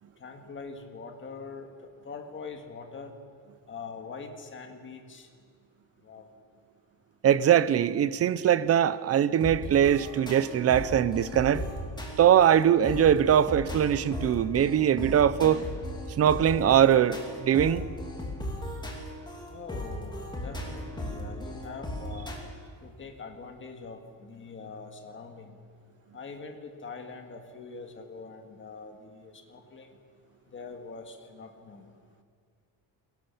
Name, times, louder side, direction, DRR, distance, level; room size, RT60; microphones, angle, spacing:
voice 1, 0.2-1.7 2.0-3.1 3.7-5.3 6.0-6.3 19.5-22.3 22.8-25.6 26.1-30.0 30.5-31.8, left 4 dB, 25° left, 1.9 m, -43 dB
voice 2, 7.2-11.6 12.2-15.6 16.2-17.8, right 9 dB, 35° right, 0.5 m, -22 dB
sound 1, 9.4-22.4, left 1 dB, 10° left, 2.7 m, -37 dB
24.0 x 17.5 x 7.2 m
cardioid pair, 175°, 45 cm